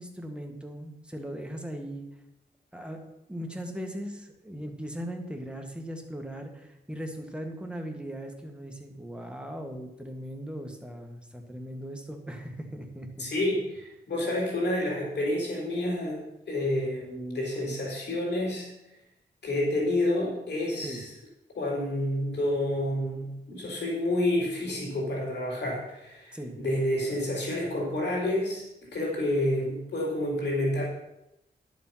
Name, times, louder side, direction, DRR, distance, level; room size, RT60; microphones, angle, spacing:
voice 1, 0.0-2.1 2.7-3.0 3.3-13.3 20.8-21.0 26.3-26.6, equal, 5° right, 3 dB, 1.8 m, -39 dB
voice 2, 13.2-16.2 16.5-18.7 19.4-21.1 21.6-28.6 28.9-30.9, left 1 dB, 85° left, -2 dB, 4.2 m, -29 dB
11.0 x 7.3 x 5.8 m, 0.88 s
wide cardioid pair, 85°, 17 cm